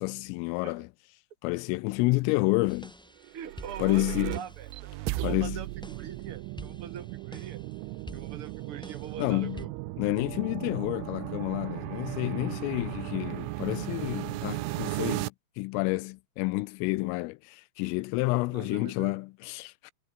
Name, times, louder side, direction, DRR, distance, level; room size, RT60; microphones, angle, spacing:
voice 1, 0.0-0.9 1.4-2.9 3.8-4.4 5.2-5.6 9.2-9.7 10.0-19.9, left 23 dB, 90° left, 3.3 m, -29 dB
sound 1, 2.7-9.6, equal, ahead, 3.4 m, -49 dB
sound 2, 3.2-15.3, right 20 dB, 90° right, 3.3 m, -36 dB
voice 2, 3.3-7.6 8.1-9.7 18.5-19.2, right 8 dB, 35° right, 2.7 m, -43 dB
omnidirectional pair, 5.8 m